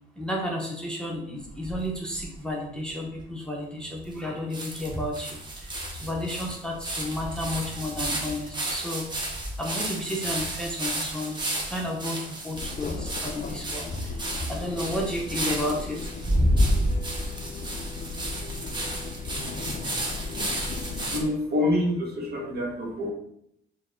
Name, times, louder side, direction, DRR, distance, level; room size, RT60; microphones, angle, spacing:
voice 1, 0.2-16.1, left 1 dB, 5° left, -2 dB, 0.7 m, -32 dB
sound 1, 1.4-2.4 2.9-3.0 3.2-3.3 4.1-4.2 4.5-21.2, right 1 dB, 20° right, 0.9 m, -31 dB
sound 2, 12.5-21.2, left 4 dB, 45° left, 0.4 m, -37 dB
voice 2, 21.1-23.1, left 1 dB, 50° right, -1 dB, 1.2 m, -26 dB
4.5 x 2.1 x 3.6 m, 0.74 s
cardioid pair, 90°, 20 cm